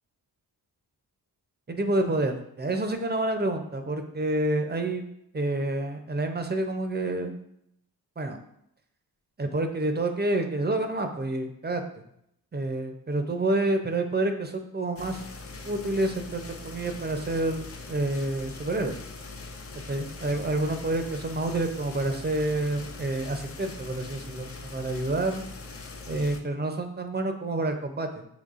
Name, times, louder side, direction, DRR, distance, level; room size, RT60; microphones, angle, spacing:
voice 1, 1.7-5.1 5.3-7.3 8.2-8.4 9.4-12.0 12.5-15.2 15.6-18.9 19.9-25.5 26.1-28.3, right 2 dB, 25° right, 6 dB, 0.6 m, -28 dB
sound 1, 15.0-26.4, left 3 dB, 35° left, 0.6 m, -42 dB
5.5 x 3.1 x 2.5 m, 0.75 s
cardioid pair, 60°, 39 cm